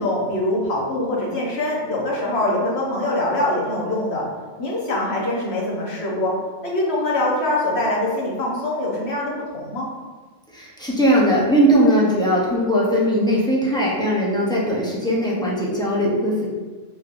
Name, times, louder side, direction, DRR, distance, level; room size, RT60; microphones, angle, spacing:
voice 1, 0.0-4.2 4.6-6.3 6.6-9.9, left 1 dB, 60° left, -4 dB, 1.2 m, -23 dB
voice 2, 10.5-16.5, equal, 5° left, -6 dB, 0.5 m, -19 dB
4.3 x 3.1 x 2.5 m, 1.3 s
omnidirectional pair, 1.2 m